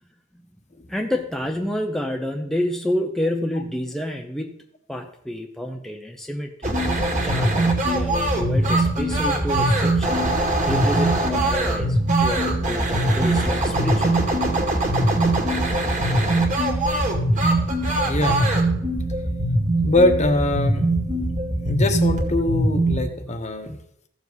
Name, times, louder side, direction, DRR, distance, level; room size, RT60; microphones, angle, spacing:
voice 1, 0.9-4.6 4.9-7.0 7.2-10.3 10.6-14.2, left 1 dB, ahead, 2 dB, 0.7 m, -29 dB
sound 1, 6.6-23.0, right 1 dB, 40° right, 2.2 m, -21 dB
voice 2, 17.8-18.4 19.8-20.9 21.6-23.8, left 1 dB, 35° left, 7 dB, 1.1 m, -22 dB
15.5 x 7.1 x 4.1 m, 0.72 s
head